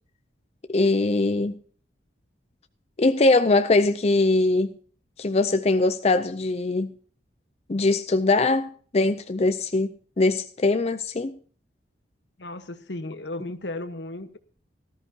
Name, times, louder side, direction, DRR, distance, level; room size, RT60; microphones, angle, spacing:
voice 1, 0.7-1.5 3.0-4.7 5.2-6.9 7.7-11.3, left 2 dB, 35° left, 0.5 m, -22 dB
voice 2, 12.4-14.4, left 2 dB, 75° left, 1.2 m, -35 dB
18.5 x 13.5 x 2.8 m
head